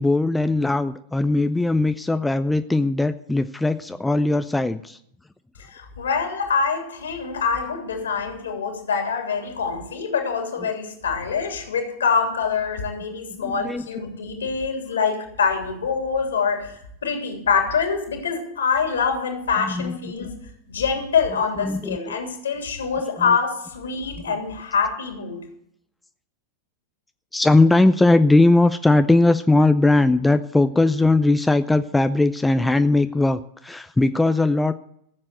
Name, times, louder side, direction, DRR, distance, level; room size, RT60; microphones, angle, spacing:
voice 1, 0.0-5.0 13.3-13.9 19.6-20.0 20.2-20.3 21.6-22.2 27.3-34.7, left 2 dB, 5° left, 10 dB, 0.5 m, -19 dB
voice 2, 5.6-20.4 20.7-25.4, left 5 dB, 70° left, 3 dB, 3.2 m, -25 dB
15.0 x 7.5 x 7.9 m, 0.72 s
figure-of-eight pair, 90°, 0 cm